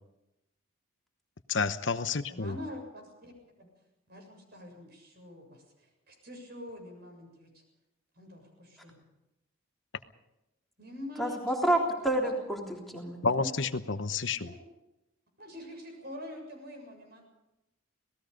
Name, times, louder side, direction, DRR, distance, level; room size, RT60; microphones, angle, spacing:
voice 1, 1.5-2.5 13.2-14.5, left 4 dB, 65° left, 10 dB, 0.9 m, -30 dB
voice 2, 2.3-3.3 3.6-3.7 4.1-7.6 8.2-9.0 10.8-11.6 12.2-12.3 14.4-14.5 15.4-17.2, left 1 dB, 50° right, 3 dB, 7.3 m, -45 dB
voice 3, 11.2-13.5, right 1 dB, ahead, -2 dB, 3.5 m, -29 dB
27.0 x 19.0 x 5.3 m, 0.92 s
head